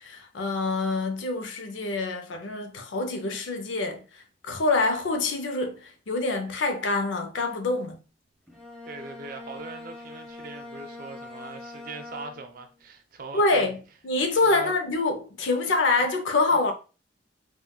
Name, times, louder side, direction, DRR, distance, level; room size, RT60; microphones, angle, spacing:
voice 1, 0.0-8.0 13.3-16.7, left 3 dB, 90° left, 0.6 m, -26 dB
Bowed string instrument, 8.5-12.7, left 2 dB, 5° left, 0.9 m, -43 dB
voice 2, 8.9-13.7 14.4-14.7 16.0-16.1 16.6-16.7, right 3 dB, 50° right, 0.5 m, -41 dB
3.7 x 2.2 x 2.3 m
head